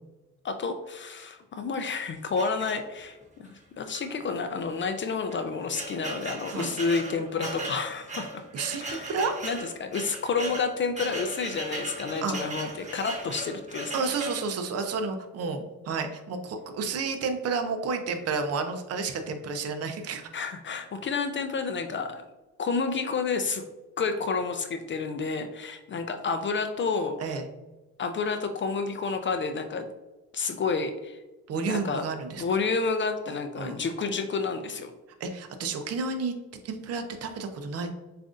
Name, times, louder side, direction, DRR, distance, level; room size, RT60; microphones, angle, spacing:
voice 1, 0.4-8.4 8.7-9.1 9.4-13.9 20.3-22.2 22.6-23.6 24.0-27.2 28.0-29.9 30.3-31.2 31.7-32.1 32.4-34.9, left 4 dB, 40° left, 7 dB, 0.4 m, -30 dB
sound 1, 2.4-3.2 3.9-4.1 4.4-4.5 5.1-14.5, right 1 dB, 25° right, 0.9 m, -37 dB
voice 2, 8.5-9.3 12.2-12.4 13.9-20.3 27.2-27.4 31.5-32.4 33.6-33.8 35.2-36.3 36.6-37.9, right 4 dB, 55° right, 6 dB, 0.6 m, -31 dB
7.4 x 2.5 x 2.5 m, 1.1 s
cardioid pair, 90°, 30 cm